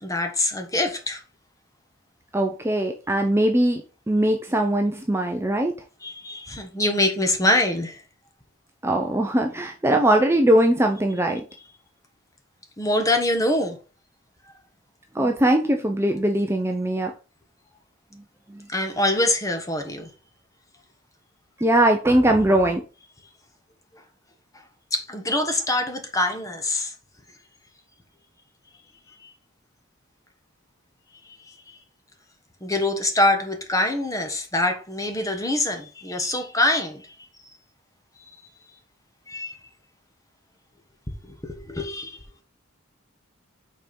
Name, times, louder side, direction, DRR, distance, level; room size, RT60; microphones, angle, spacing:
voice 1, 0.0-1.2 6.0-8.0 12.8-13.8 18.7-20.1 24.9-26.9 31.4-31.8 32.6-37.0 39.3-39.5 41.3-42.2, left 1 dB, 15° left, 1.2 m, -24 dB
voice 2, 2.3-5.8 8.8-11.4 15.1-17.1 18.5-18.6 21.6-22.8, right 1 dB, 15° right, 0.6 m, -21 dB
5.8 x 4.5 x 5.2 m
head